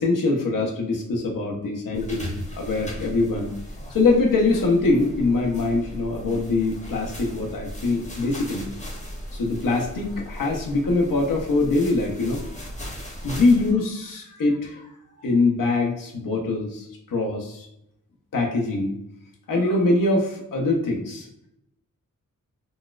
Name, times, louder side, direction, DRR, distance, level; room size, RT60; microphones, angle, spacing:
voice 1, 0.0-3.5 3.9-8.7 9.3-12.5 13.2-14.9 15.2-17.7 18.3-19.0 19.5-21.3, left 3 dB, 80° left, -1 dB, 0.7 m, -23 dB
sound 1, 1.9-13.7, equal, 20° left, 0.8 m, -37 dB
4.0 x 2.3 x 2.3 m, 0.79 s
wide cardioid pair, 100°, 32 cm